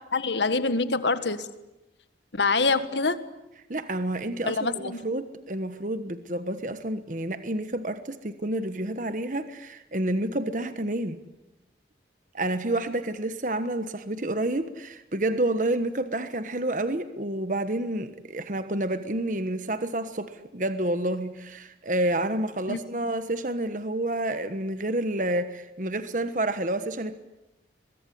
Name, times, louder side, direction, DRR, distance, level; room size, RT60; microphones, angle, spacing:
voice 1, 0.1-1.5 2.3-3.2 4.5-5.0 22.7-22.8, left 3 dB, 85° left, 1.7 m, -25 dB
voice 2, 3.7-11.2 12.3-27.1, right 1 dB, 45° right, 1.3 m, -29 dB
23.0 x 22.5 x 10.0 m
head